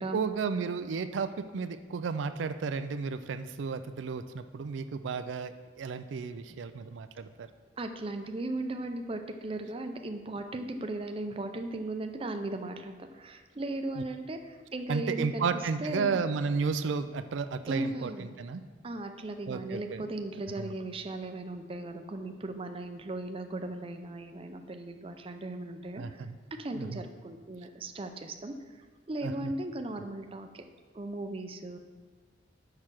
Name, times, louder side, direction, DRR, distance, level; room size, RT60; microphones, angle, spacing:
voice 1, 0.1-7.5 14.0-14.1 14.9-18.6 19.5-20.0 20.6-20.7 26.0-26.4 26.8-27.0 29.2-29.3, right 5 dB, 85° right, 10 dB, 0.4 m, -33 dB
voice 2, 7.8-16.2 17.7-18.3 18.8-26.3 26.6-30.6 30.9-31.8, right 2 dB, 30° right, 6 dB, 0.5 m, -37 dB
6.7 x 5.7 x 6.1 m, 1.5 s
head